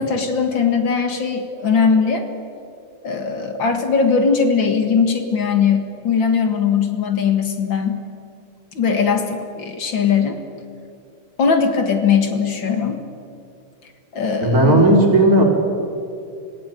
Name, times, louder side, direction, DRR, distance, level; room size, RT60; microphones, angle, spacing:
voice 1, 0.0-2.3 3.0-8.0 8.8-10.4 11.4-13.0 14.1-14.9, left 6 dB, 60° left, 6 dB, 2.4 m, -19 dB
voice 2, 14.4-15.4, right 1 dB, 40° right, 0 dB, 4.2 m, -14 dB
26.0 x 16.5 x 9.1 m, 2.5 s
omnidirectional pair, 2.4 m